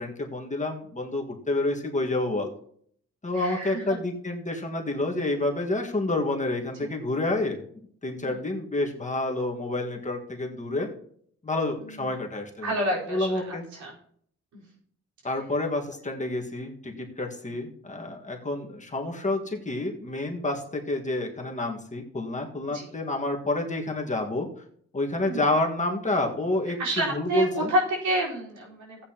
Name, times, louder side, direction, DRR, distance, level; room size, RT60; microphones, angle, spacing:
voice 1, 0.0-2.5 3.2-7.6 8.0-10.9 11.4-12.8 13.1-13.6 15.2-24.5 24.9-27.7, left 2 dB, 25° left, 1 dB, 1.8 m, -29 dB
voice 2, 3.3-3.8 6.8-6.9 8.2-8.4 11.8-12.0 12.6-13.9 14.5-14.6 22.7-22.9 25.2-25.4 26.8-29.0, right 1 dB, 85° right, -4 dB, 4.5 m, -29 dB
15.0 x 8.7 x 3.0 m, 0.63 s
cardioid pair, 90°, 29 cm